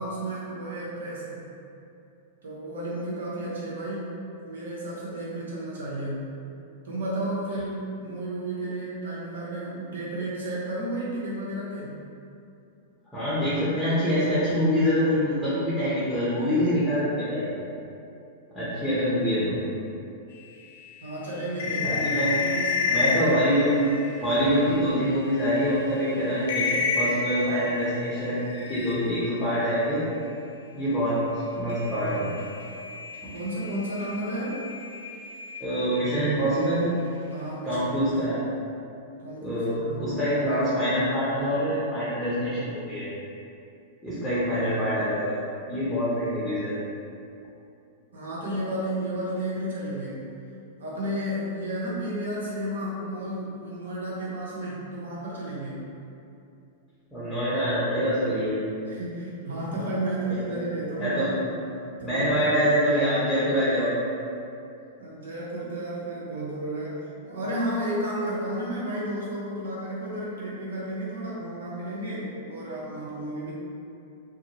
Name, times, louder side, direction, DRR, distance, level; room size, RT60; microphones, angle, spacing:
voice 1, 0.0-1.3 2.4-4.1 4.4-6.3 6.8-12.0 21.0-23.4 33.3-34.6 37.3-38.0 39.2-40.2 48.1-50.3 50.8-55.9 58.9-61.4 62.0-62.4 65.0-73.5, right 1 dB, 80° right, -6 dB, 0.7 m, -32 dB
voice 2, 13.1-17.5 18.5-19.6 21.6-22.3 22.9-23.7 24.2-30.0 30.8-32.3 35.6-36.9 37.6-38.4 39.4-43.1 44.0-45.4 45.7-46.7 57.1-58.6 59.5-59.6 60.3-60.6 61.0-61.3 62.0-63.9, equal, 5° left, -12 dB, 0.7 m, -25 dB
sound 1, 20.6-24.9 25.5-25.6 25.9-26.1 26.4-29.3 31.7-36.1, left 5 dB, 65° left, 0.4 m, -31 dB
2.4 x 2.0 x 2.9 m, 2.6 s
hypercardioid pair, 110°, 0 cm